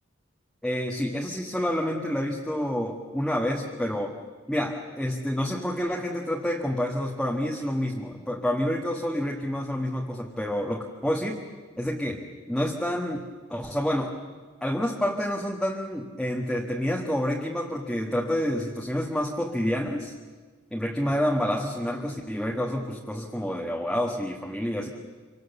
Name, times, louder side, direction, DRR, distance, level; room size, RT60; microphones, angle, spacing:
voice 1, 0.6-4.2 4.5-11.4 11.8-13.2 13.5-14.2 14.6-20.1 20.7-24.9, equal, 5° left, 0 dB, 1.5 m, -28 dB
27.5 x 25.0 x 6.9 m, 1.4 s
head